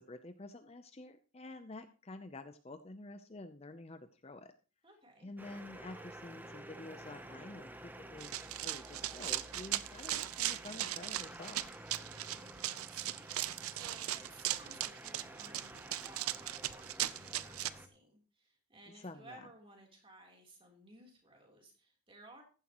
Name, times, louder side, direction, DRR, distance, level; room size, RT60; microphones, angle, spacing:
voice 1, 0.0-4.5 5.2-11.8 18.9-19.4, left 2 dB, 30° left, 9 dB, 0.6 m, -49 dB
voice 2, 4.8-5.3 12.3-22.4, right 1 dB, 25° right, 1 dB, 3.5 m, -58 dB
sound 1, 5.4-17.9, right 1 dB, 10° right, 0.8 m, -51 dB
Run, 8.2-17.7, right 13 dB, 80° right, 0.6 m, -38 dB
14.5 x 11.0 x 3.0 m, 0.37 s
head